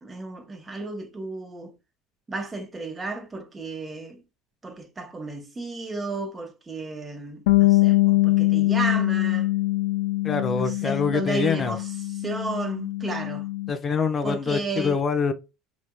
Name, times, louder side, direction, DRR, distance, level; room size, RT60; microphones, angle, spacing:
voice 1, 0.0-1.8 2.3-4.2 4.6-9.5 10.5-13.5 14.2-15.0, right 3 dB, 20° right, 1.4 m, -33 dB
Bass guitar, 7.5-13.7, left 18 dB, 80° left, 0.3 m, -23 dB
voice 2, 10.2-11.8 13.7-15.3, left 5 dB, 35° left, 0.9 m, -25 dB
5.2 x 2.8 x 2.2 m
hypercardioid pair, 90°, 0 cm